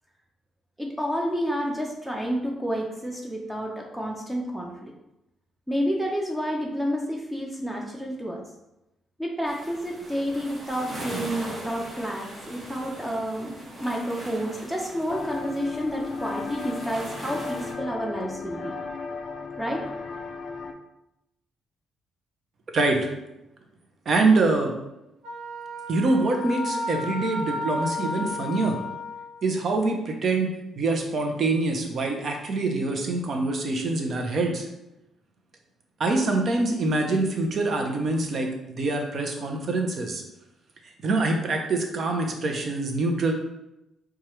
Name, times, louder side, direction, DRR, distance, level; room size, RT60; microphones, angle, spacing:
voice 1, 0.8-4.9 5.7-8.4 9.2-13.5 13.8-18.7 19.6-19.8, equal, 5° right, -1 dB, 0.6 m, -30 dB
sound 1, 9.4-17.7, right 1 dB, 35° right, 1.1 m, -40 dB
sound 2, 15.1-20.7, left 4 dB, 50° left, 0.3 m, -35 dB
voice 2, 22.7-23.1 24.1-24.7 25.9-28.8 29.4-30.5 30.8-34.7 36.0-40.2 41.0-43.3, right 3 dB, 50° right, 3 dB, 0.7 m, -25 dB
Wind instrument woodwind instrument, 25.2-29.4, left 2 dB, 80° right, 1.0 m, -33 dB
4.5 x 2.4 x 3.1 m, 0.91 s
cardioid pair, 90°, 0 cm